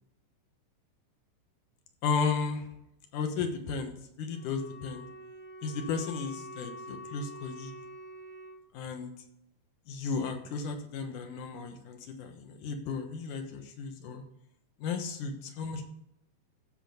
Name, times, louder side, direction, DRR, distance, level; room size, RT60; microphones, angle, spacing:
voice 1, 2.0-2.7 3.1-5.1 5.6-7.7 8.7-9.1 9.9-14.2 14.8-15.8, left 5 dB, 70° left, 5 dB, 2.6 m, -34 dB
Wind instrument woodwind instrument, 4.3-8.6, equal, 60° right, 1.2 m, -46 dB
14.5 x 5.1 x 5.1 m, 0.80 s
omnidirectional pair, 4.0 m